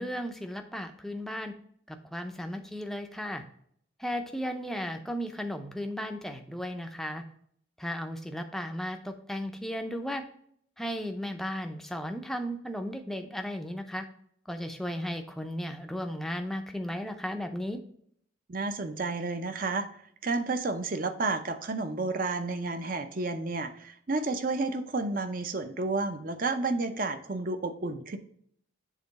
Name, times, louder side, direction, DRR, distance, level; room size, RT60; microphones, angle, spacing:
voice 1, 0.0-1.5 1.9-3.4 4.0-7.2 7.8-10.2 10.8-14.1 14.5-17.8, equal, ahead, 5 dB, 0.5 m, -35 dB
voice 2, 18.5-19.9 20.2-28.2, right 3 dB, 40° right, 9 dB, 0.6 m, -31 dB
7.5 x 3.8 x 4.0 m, 0.66 s
head